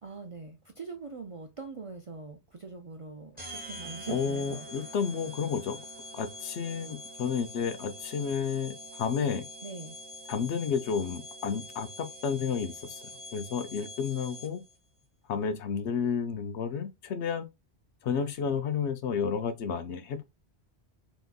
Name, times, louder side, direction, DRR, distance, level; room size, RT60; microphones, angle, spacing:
voice 1, 0.0-4.7 9.6-10.0, right 4 dB, 50° right, 0.4 m, -42 dB
sound 1, 3.4-14.8, left 1 dB, 10° right, 1.0 m, -45 dB
voice 2, 4.1-5.8 6.1-9.5 10.3-13.0 13.3-14.6 15.3-17.5 18.0-20.2, left 6 dB, 90° left, 1.0 m, -31 dB
3.6 x 3.0 x 2.3 m
omnidirectional pair, 1.1 m